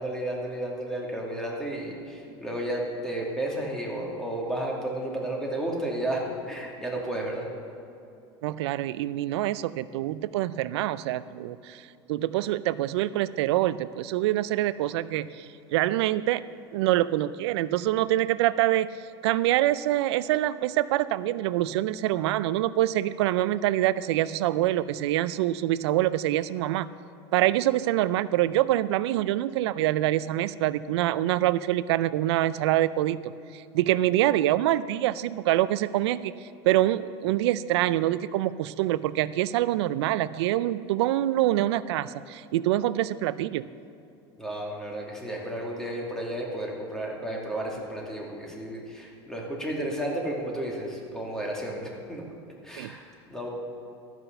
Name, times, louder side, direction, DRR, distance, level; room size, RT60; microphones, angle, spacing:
voice 1, 0.0-7.5 44.4-52.2 52.6-53.5, right 1 dB, 5° left, -2 dB, 2.4 m, -32 dB
voice 2, 8.4-11.8 12.1-18.9 19.2-26.9 27.3-36.3 36.6-43.6 52.8-52.9, right 14 dB, 80° right, 16 dB, 0.4 m, -25 dB
13.5 x 6.0 x 6.7 m, 2.7 s
supercardioid pair, 110°, 14 cm